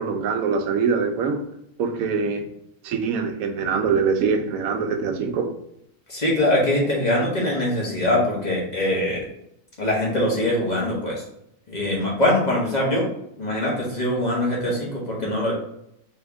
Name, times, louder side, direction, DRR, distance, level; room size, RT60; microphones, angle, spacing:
voice 1, 0.0-1.4 1.8-2.5 2.8-5.5, right 5 dB, 90° right, 7 dB, 1.0 m, -23 dB
voice 2, 6.1-9.3 9.8-11.2 11.7-13.1 13.4-15.5, left 1 dB, 35° left, -4 dB, 1.1 m, -22 dB
4.4 x 2.8 x 3.4 m, 0.77 s
omnidirectional pair, 1.4 m